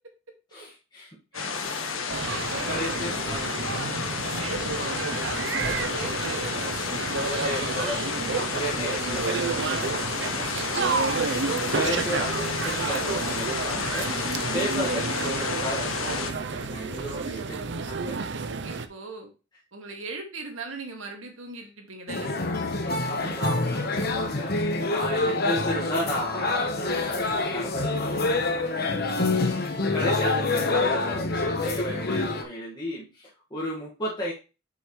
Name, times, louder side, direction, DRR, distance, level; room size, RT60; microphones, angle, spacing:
voice 1, 0.5-1.1 2.2-3.5 7.3-8.0 8.3-10.6 11.8-14.1 14.5-18.2 23.1-28.1 29.4-34.3, equal, 20° left, -6 dB, 1.8 m, -34 dB
sound 1, 1.3-16.3, left 5 dB, 90° left, 1.2 m, -31 dB
voice 2, 1.3-2.0 2.4-8.4 11.2-11.8 14.9-15.2 18.6-19.3 19.7-22.4 27.9-28.0 28.6-28.7, right 3 dB, 90° right, 2 dB, 2.1 m, -40 dB
sound 2, 2.1-18.9, right 4 dB, 60° right, 0.6 m, -30 dB
sound 3, 22.1-32.4, left 3 dB, 50° left, 1.2 m, -26 dB
7.6 x 6.3 x 3.2 m, 0.31 s
head